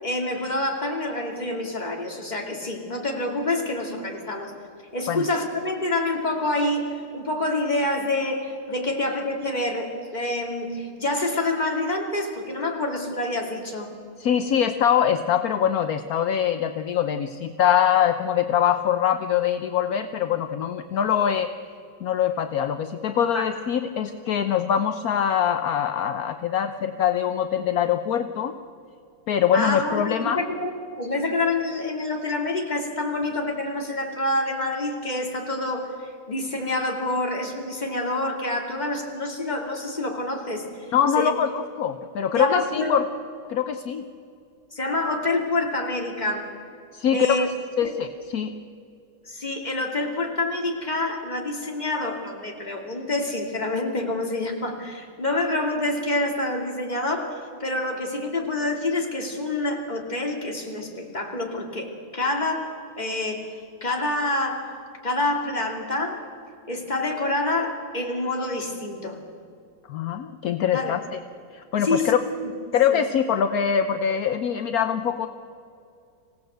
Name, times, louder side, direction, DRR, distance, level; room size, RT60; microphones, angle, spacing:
voice 1, 0.0-4.5 4.9-13.9 23.3-23.4 29.5-30.7 31.0-40.9 41.1-41.3 42.3-42.9 44.7-46.5 47.1-47.5 47.8-47.9 49.2-63.5 63.8-64.7 65.0-66.2 66.7-69.2 70.7-71.0 71.8-72.1 72.9-73.0, left 2 dB, 20° left, 1 dB, 2.6 m, -27 dB
voice 2, 14.2-21.5 22.0-28.5 29.3-30.4 40.9-43.1 43.5-44.1 46.9-47.5 47.8-48.5 69.9-71.2 71.5-72.2 72.7-75.3, left 8 dB, 60° left, 9 dB, 1.0 m, -23 dB
26.0 x 17.0 x 8.0 m, 2.5 s
omnidirectional pair, 2.2 m